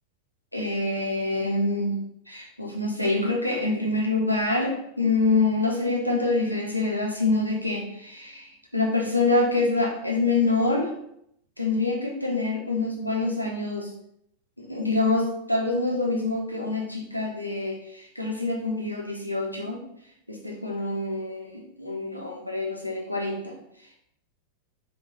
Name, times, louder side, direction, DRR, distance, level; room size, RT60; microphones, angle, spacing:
voice 1, 0.5-2.0 2.3-10.9 11.6-13.9 14.6-19.8 20.3-23.6, left 3 dB, 90° left, -1 dB, 0.7 m, -26 dB
3.8 x 2.3 x 2.9 m, 0.76 s
figure-of-eight pair, 90°, 0 cm